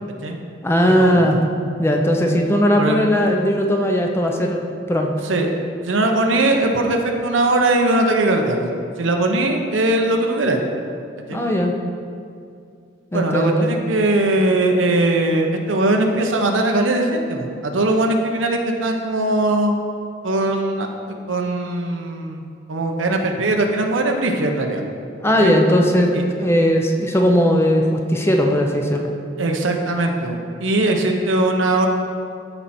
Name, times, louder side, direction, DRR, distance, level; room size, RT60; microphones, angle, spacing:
voice 1, 0.6-1.4 1.8-4.6 4.9-5.1 11.3-11.7 13.1-13.6 25.2-29.1, equal, 15° left, 2 dB, 0.7 m, -18 dB
voice 2, 5.8-8.7 9.0-10.6 11.3-11.4 13.1-19.8 20.2-22.4 22.7-24.8 25.4-25.5 26.1-26.2 29.4-31.9, right 2 dB, 80° right, 3 dB, 0.9 m, -20 dB
13.0 x 4.5 x 4.3 m, 2.4 s
head